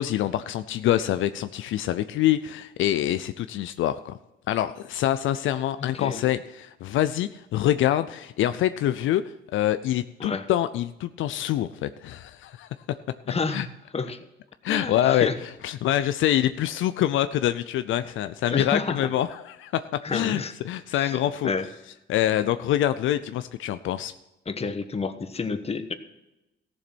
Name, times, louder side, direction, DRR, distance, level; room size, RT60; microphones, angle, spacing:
voice 1, 0.0-4.1 4.5-9.2 9.5-12.7 13.5-13.7 14.6-19.8 20.1-21.5 22.1-24.1, left 12 dB, 80° left, 12 dB, 0.5 m, -25 dB
voice 2, 5.8-6.3 10.2-10.4 13.3-13.7 13.9-14.2 14.7-15.4 18.5-19.0 20.0-20.5 21.0-21.2 21.4-21.7 24.5-25.9, left 4 dB, 30° left, 9 dB, 1.2 m, -29 dB
14.5 x 7.2 x 6.2 m, 0.94 s
cardioid pair, 90°, 20 cm